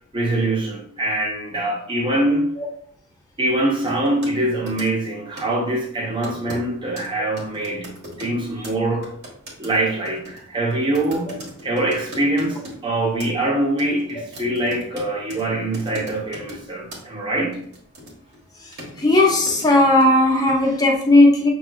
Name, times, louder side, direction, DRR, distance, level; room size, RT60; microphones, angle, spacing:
voice 1, 0.1-2.5 3.4-9.1 9.6-17.6, right 1 dB, 20° right, -2 dB, 0.8 m, -24 dB
sound 1, 3.9-4.4 4.7-5.1 5.4-5.6 6.2-6.6 7.0-7.1 7.3-8.4 8.6-8.8 9.0-12.8 13.2-13.5 13.8-15.4 15.7-16.6 16.9-17.0 17.5-18.4 18.8-20.0, equal, 50° right, 1.4 m, -38 dB
voice 2, 19.0-21.5, left 2 dB, 15° left, 0 dB, 0.8 m, -16 dB
6.5 x 3.2 x 2.2 m, 0.63 s
head